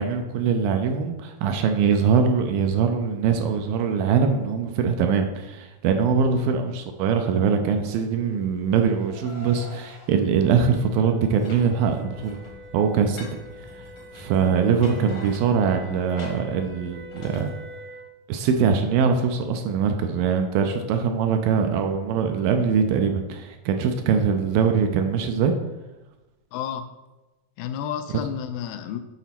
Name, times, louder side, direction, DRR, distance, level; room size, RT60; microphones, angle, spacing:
voice 1, 0.0-12.4 12.7-13.3 13.8-13.9 14.1-17.5 18.3-25.5, right 6 dB, 80° right, 5 dB, 2.2 m, -22 dB
Car, 7.6-10.1, left 1 dB, 40° left, 0.6 m, -46 dB
sound 1, 8.2-18.2, left 1 dB, 20° right, 0.8 m, -47 dB
sound 2, 11.3-17.5, left 2 dB, 65° left, 1.4 m, -44 dB
voice 2, 26.5-26.9 27.6-29.0, left 9 dB, 85° left, 9 dB, 2.6 m, -31 dB
8.1 x 4.1 x 5.9 m, 1.1 s
omnidirectional pair, 4.4 m